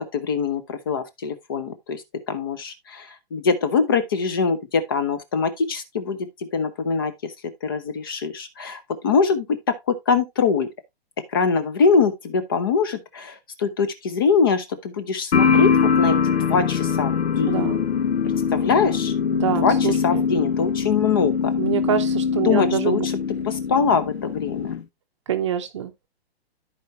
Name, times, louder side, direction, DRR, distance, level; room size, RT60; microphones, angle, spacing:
voice 1, 0.0-2.0 2.3-7.3 7.6-9.5 9.9-10.7 11.3-15.7 16.0-17.6 18.5-19.1 19.6-19.7 20.0-21.5 22.4-23.0 23.4-24.7, left 5 dB, 20° left, 0.7 m, -23 dB
sound 1, 15.3-24.8, left 6 dB, 80° left, 1.1 m, -22 dB
voice 2, 17.5-17.8 19.3-20.3 21.6-23.1 25.3-26.1, right 9 dB, 30° right, 0.8 m, -26 dB
14.0 x 4.7 x 2.7 m
hypercardioid pair, 180°, 31 cm